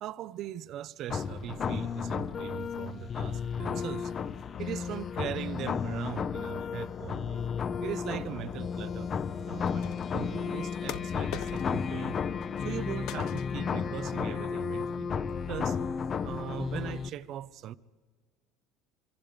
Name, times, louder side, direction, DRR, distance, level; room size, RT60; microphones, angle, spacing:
voice 1, 0.0-4.1 4.6-7.4 7.8-9.1 9.5-12.2 12.6-15.1 15.5-15.8 16.2-17.8, right 11 dB, 55° right, 0.8 m, -39 dB
sound 1, 1.1-17.1, left 6 dB, 35° left, 0.8 m, -33 dB
sound 2, 9.7-10.2 10.9-11.9 12.2-12.8 13.1-13.7, left 13 dB, 65° left, 0.8 m, -43 dB
26.0 x 23.5 x 5.2 m
cardioid pair, 120°, 0 cm